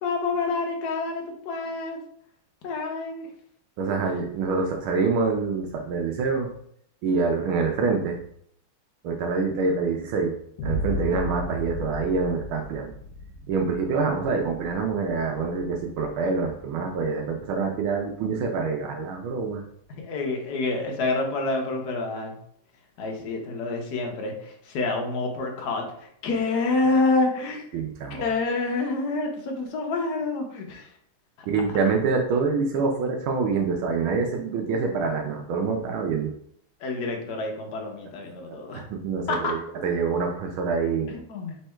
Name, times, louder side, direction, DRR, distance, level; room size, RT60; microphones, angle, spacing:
voice 1, 0.0-2.0 2.6-3.3 19.9-22.4 23.0-27.8 28.2-30.9 31.7-31.8 36.8-38.8 39.3-39.5 41.1-41.6, left 3 dB, 60° left, 1 dB, 1.2 m, -28 dB
voice 2, 3.8-6.5 7.0-8.2 9.0-10.3 10.6-12.9 13.5-19.6 27.7-28.2 31.5-36.3 38.5-41.1, right 4 dB, 75° right, 2 dB, 1.4 m, -26 dB
Boom, 10.6-18.4, equal, 85° left, 0.8 m, -36 dB
3.6 x 3.3 x 4.4 m, 0.67 s
omnidirectional pair, 2.4 m